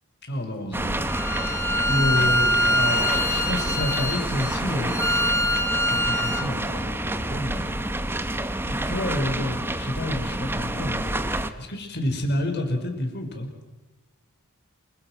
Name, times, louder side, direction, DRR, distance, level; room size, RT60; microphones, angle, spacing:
voice 1, 0.2-1.4 1.9-5.6 5.9-7.8 8.6-13.5, left 1 dB, 50° left, 4 dB, 5.4 m, -29 dB
sound 1, 0.7-11.5, right 1 dB, 10° right, 1.2 m, -28 dB
Bowed string instrument, 1.1-6.5, left 1 dB, 10° left, 1.4 m, -24 dB
28.0 x 25.0 x 6.4 m, 1.1 s
head